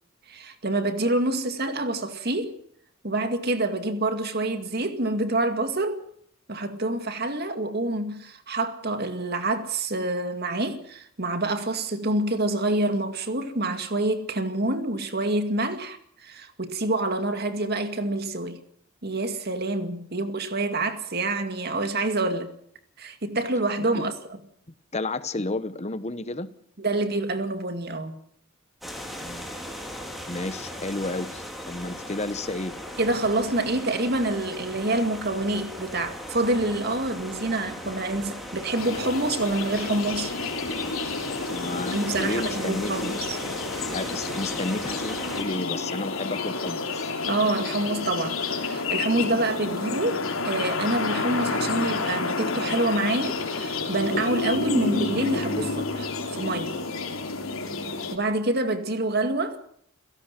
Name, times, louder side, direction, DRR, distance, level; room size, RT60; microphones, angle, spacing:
voice 1, 0.3-2.5 3.0-6.0 6.5-18.6 19.0-22.5 23.0-24.1 26.8-28.2 33.0-40.3 41.9-43.4 47.3-56.8 58.1-59.6, right 2 dB, 50° right, 2.2 m, -27 dB
voice 2, 24.9-26.5 29.2-29.5 30.3-32.8 41.5-43.1 43.9-47.1, left 2 dB, 30° left, 1.0 m, -32 dB
sound 1, 28.8-45.4, equal, ahead, 4.0 m, -37 dB
sound 2, 38.7-58.2, left 3 dB, 90° left, 3.4 m, -30 dB
29.5 x 17.0 x 6.0 m
head